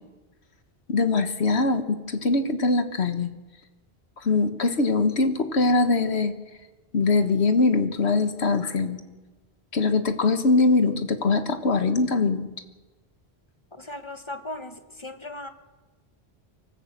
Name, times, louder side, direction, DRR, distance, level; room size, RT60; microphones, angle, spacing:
voice 1, 0.9-3.3 4.2-6.3 6.9-9.0 9.7-12.5, left 3 dB, 75° left, 8 dB, 1.6 m, -22 dB
voice 2, 13.7-15.5, left 1 dB, 25° left, 8 dB, 1.2 m, -37 dB
24.5 x 14.5 x 7.5 m, 1.2 s
omnidirectional pair, 1.1 m